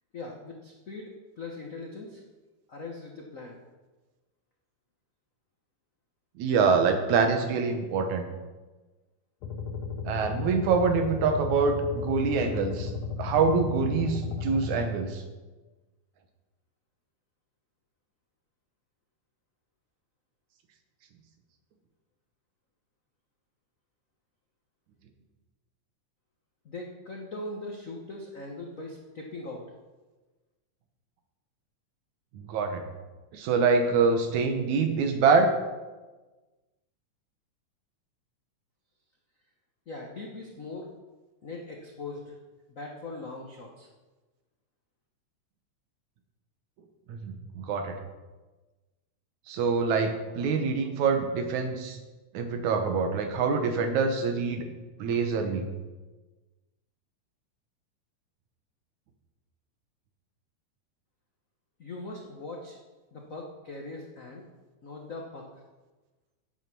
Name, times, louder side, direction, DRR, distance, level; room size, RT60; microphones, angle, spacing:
voice 1, 0.1-2.2 2.7-3.6 26.6-29.6 39.9-40.9 41.4-42.4 42.7-43.9 61.8-62.8 63.1-64.4 64.8-65.6, left 2 dB, 90° left, 0 dB, 0.7 m, -40 dB
voice 2, 6.4-8.3 10.1-12.9 13.2-15.2 32.3-32.9 33.3-35.5 47.1-48.0 49.5-52.0 52.3-54.7 55.0-55.7, right 5 dB, 80° right, 6 dB, 2.5 m, -25 dB
sound 1, 9.4-14.9, left 5 dB, 70° left, 2.2 m, -34 dB
9.2 x 8.5 x 6.0 m, 1.2 s
omnidirectional pair, 3.3 m